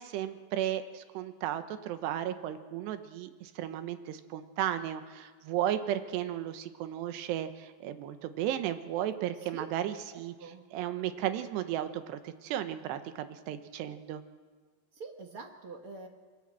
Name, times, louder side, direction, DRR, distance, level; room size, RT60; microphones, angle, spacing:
voice 1, 0.0-10.3 10.7-14.2, right 11 dB, 80° right, 9 dB, 3.2 m, -34 dB
voice 2, 10.1-10.6 14.9-16.1, right 4 dB, 55° right, 3 dB, 1.5 m, -45 dB
27.0 x 22.0 x 7.6 m, 1.5 s
omnidirectional pair, 5.0 m